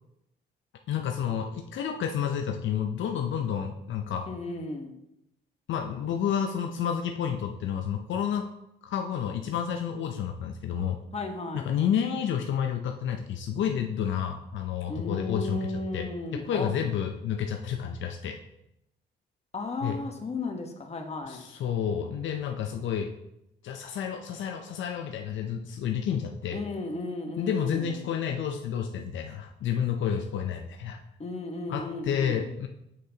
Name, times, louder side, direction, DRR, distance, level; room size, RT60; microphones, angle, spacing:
voice 1, 0.9-4.3 5.7-8.5 8.8-11.0 11.5-18.4 19.8-20.0 21.2-23.1 23.6-26.6 27.4-31.0 31.7-32.7, left 8 dB, 70° left, 4 dB, 0.6 m, -30 dB
voice 2, 4.3-4.9 11.1-11.7 14.9-16.7 19.5-21.4 26.5-28.0 31.2-32.5, left 3 dB, 30° left, 3 dB, 1.2 m, -34 dB
7.6 x 6.5 x 2.8 m, 0.82 s
cardioid pair, 90°, 20 cm